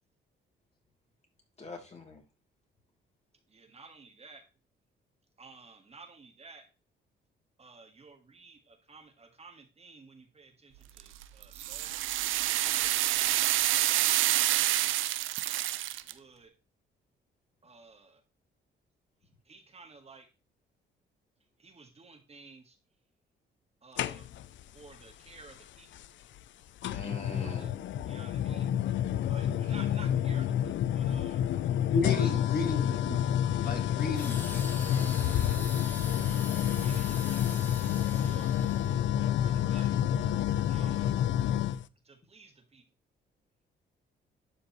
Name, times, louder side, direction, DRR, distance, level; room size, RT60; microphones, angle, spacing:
voice 1, 1.6-2.2 26.8-27.7 28.0-28.3, left 3 dB, 35° left, 2.8 m, -43 dB
voice 2, 3.5-4.4 5.4-6.6 7.6-12.0 12.7-12.9 14.3-15.0 16.1-16.5 17.6-18.2 19.5-20.3 21.6-22.8 23.8-24.3 24.7-25.9 27.3-27.7 28.0-28.7 29.2-31.4 32.2-32.3 36.8-37.7 38.1-38.5 39.4-40.0 40.7-41.1 42.0-42.8, right 4 dB, 30° right, 1.6 m, -53 dB
sound 1, 11.0-16.1, right 14 dB, 90° right, 0.6 m, -28 dB
sound 2, 24.0-24.6 25.9-26.0 26.8-41.8, left 10 dB, 70° left, 0.5 m, -29 dB
voice 3, 31.9-33.2 33.6-34.8, left 3 dB, 50° left, 2.2 m, -33 dB
sound 3, 34.1-39.1 39.7-39.9, left 1 dB, 10° left, 1.6 m, -44 dB
11.5 x 5.1 x 3.1 m
cardioid pair, 90°, 20 cm